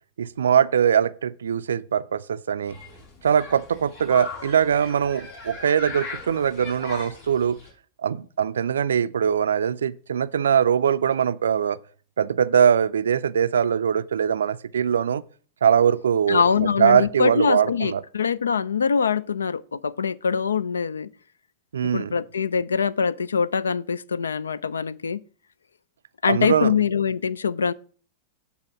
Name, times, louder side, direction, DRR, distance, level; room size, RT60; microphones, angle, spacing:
voice 1, 0.2-2.8 3.2-7.6 8.0-11.8 12.2-15.2 15.6-18.0 21.7-22.1 26.3-26.7, right 8 dB, 75° right, 0.3 m, -22 dB
Human group actions, 2.7-7.7, left 4 dB, 55° left, 5.3 m, -39 dB
voice 2, 16.3-21.1 21.8-25.2 26.2-27.7, left 6 dB, 80° left, 0.3 m, -23 dB
8.9 x 4.2 x 6.9 m
figure-of-eight pair, 95°, 0 cm